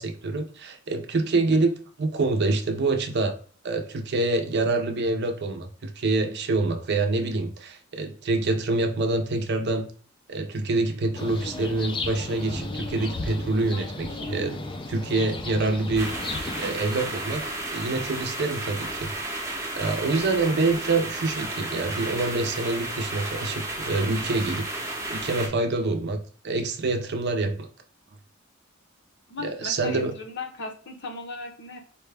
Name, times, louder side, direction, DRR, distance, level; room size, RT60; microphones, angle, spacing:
voice 1, 0.0-1.7 2.0-3.4 3.6-9.9 10.3-14.6 14.9-16.1 16.6-17.4 17.7-19.1 19.8-24.7 25.1-27.7 29.4-30.1, right 3 dB, 55° right, 6 dB, 0.6 m, -26 dB
sound 1, 11.1-17.5, left 2 dB, 25° left, 0.4 m, -35 dB
sound 2, 16.0-25.5, right 2 dB, 15° right, 0.7 m, -33 dB
voice 2, 29.3-31.8, left 3 dB, 60° left, 4 dB, 0.7 m, -37 dB
4.4 x 2.2 x 3.3 m, 0.44 s
head